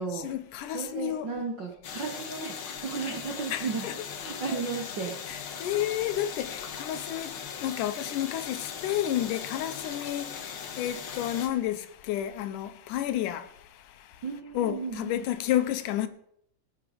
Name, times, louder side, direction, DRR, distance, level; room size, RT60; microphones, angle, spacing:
voice 1, 0.1-1.3 3.0-3.2 3.5-4.0 4.5-4.6 5.3-14.2 14.5-16.1, left 12 dB, 80° left, 2.3 m, -31 dB
voice 2, 0.7-3.9 4.2-5.5 14.2-15.2, right 5 dB, 55° right, 1.3 m, -34 dB
sound 1, 1.8-11.5, left 7 dB, 55° left, 1.5 m, -39 dB
16.5 x 8.8 x 5.1 m
omnidirectional pair, 3.8 m